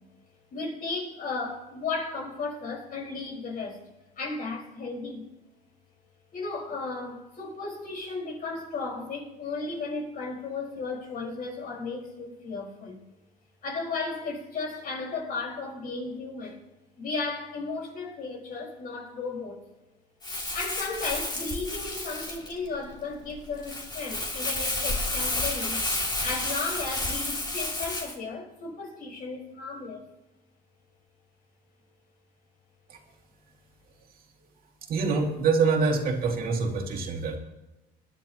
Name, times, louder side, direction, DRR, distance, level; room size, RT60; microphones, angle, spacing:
voice 1, 0.5-3.8 4.2-5.2 6.3-13.0 13.6-16.6 17.0-19.6 20.5-25.8 26.2-30.1, left 3 dB, 55° left, 4.9 m, -35 dB
Crumpling crinkling, 20.2-28.2, left 2 dB, 25° left, 2.5 m, -31 dB
voice 2, 34.9-37.4, right 4 dB, 60° right, 2.3 m, -25 dB
21.5 x 10.5 x 3.0 m
cardioid pair, 110°, 17 cm